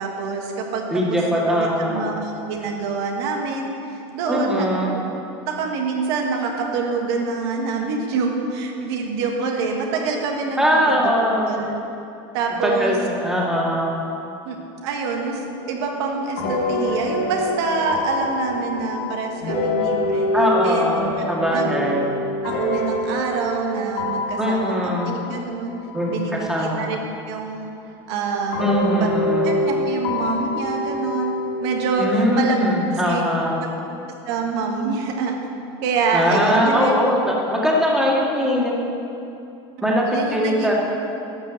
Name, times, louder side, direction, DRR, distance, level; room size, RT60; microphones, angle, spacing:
voice 1, 0.0-4.8 5.5-11.1 11.5-11.7 12.3-12.9 14.4-14.6 14.8-20.3 20.6-21.8 22.4-25.7 26.1-27.7 28.1-29.1 29.4-32.6 32.9-33.2 33.6-33.7 34.2-35.4 35.8-37.0 40.1-40.7, right 4 dB, 70° right, 1 dB, 1.5 m, -26 dB
voice 2, 0.9-2.1 4.3-4.9 10.6-11.5 12.6-13.9 20.3-21.0 21.3-22.2 24.4-25.1 25.9-27.0 28.6-29.6 32.0-33.6 36.1-38.8 39.8-40.1 40.3-40.7, equal, 5° right, -3 dB, 2.0 m, -21 dB
sound 1, 15.1-15.2 16.4-26.3 27.0-27.1 28.5-31.9, left 1 dB, 65° left, 2.0 m, -26 dB
12.0 x 5.5 x 7.8 m, 2.8 s
supercardioid pair, 125°, 14 cm